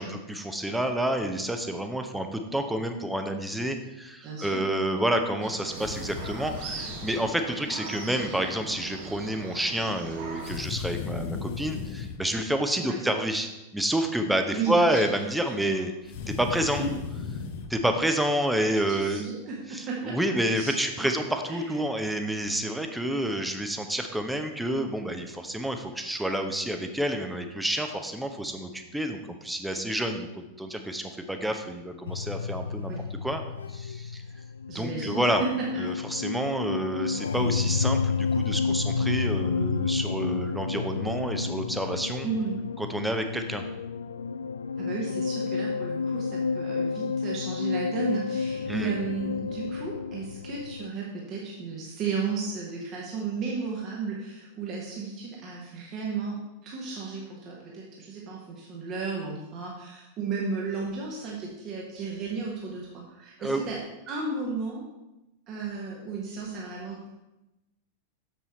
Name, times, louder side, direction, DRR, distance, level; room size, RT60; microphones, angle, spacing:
voice 1, 0.0-15.9 16.3-16.8 17.7-19.2 19.7-32.9 33.2-33.4 33.7-34.2 34.7-35.4 35.8-42.3 42.8-43.6 48.6-48.9 63.4-63.6, right 1 dB, 5° right, 6 dB, 0.9 m, -29 dB
voice 2, 4.2-4.6 12.8-13.0 14.5-15.0 15.6-15.8 16.6-16.9 18.9-20.2 20.5-20.8 21.5-21.7 32.9-33.0 34.7-35.5 35.7-35.8 42.2-42.5 44.8-63.8 64.1-64.8 65.5-67.1, right 4 dB, 35° right, -3 dB, 1.5 m, -34 dB
sound 1, 5.4-10.6, right 4 dB, 50° right, 1.6 m, -40 dB
sound 2, 5.7-7.3 10.4-12.2 16.0-17.7, left 6 dB, 50° left, 0.8 m, -36 dB
sound 3, 32.1-50.9, left 5 dB, 70° left, 0.3 m, -30 dB
7.3 x 6.9 x 4.4 m, 0.98 s
figure-of-eight pair, 90°, 0 cm